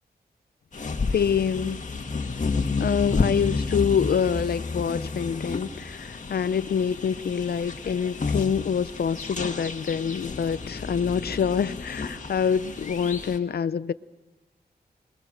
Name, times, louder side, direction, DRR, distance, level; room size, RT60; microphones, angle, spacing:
sound 1, 0.7-13.4, left 4 dB, 50° left, 2.0 m, -31 dB
voice 1, 1.1-1.8 2.8-13.9, left 7 dB, 70° left, 0.7 m, -26 dB
27.0 x 22.0 x 6.5 m
wide cardioid pair, 90°, 17 cm